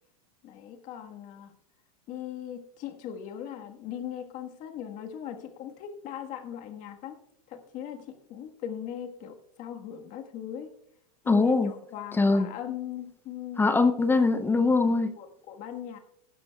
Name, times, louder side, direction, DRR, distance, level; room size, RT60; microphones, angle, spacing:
voice 1, 0.4-1.5 2.1-7.2 7.5-10.7 11.2-13.8 15.2-16.0, left 10 dB, 40° left, 4 dB, 1.5 m, -39 dB
voice 2, 11.3-11.7 12.1-12.5 13.6-15.1, left 3 dB, 10° left, 10 dB, 0.6 m, -22 dB
16.5 x 12.5 x 2.3 m, 0.73 s
supercardioid pair, 125°, 19 cm